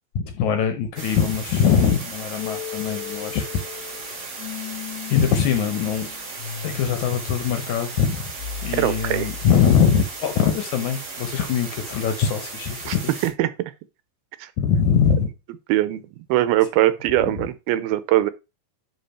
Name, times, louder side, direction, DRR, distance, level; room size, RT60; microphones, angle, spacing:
voice 1, 0.2-3.4 5.1-6.1 6.6-8.3 8.6-13.1 14.6-15.3 17.2-17.3, left 7 dB, 70° left, 1.9 m, -22 dB
sound 1, 1.0-13.3, right 3 dB, 40° right, 3.7 m, -36 dB
sound 2, 2.4-10.3, left 9 dB, 85° left, 2.5 m, -37 dB
voice 2, 8.7-9.3 12.9-13.0 13.2-13.5 14.4-14.5 15.7-18.3, right 14 dB, 90° right, 2.6 m, -21 dB
10.5 x 3.7 x 4.2 m
omnidirectional pair, 4.3 m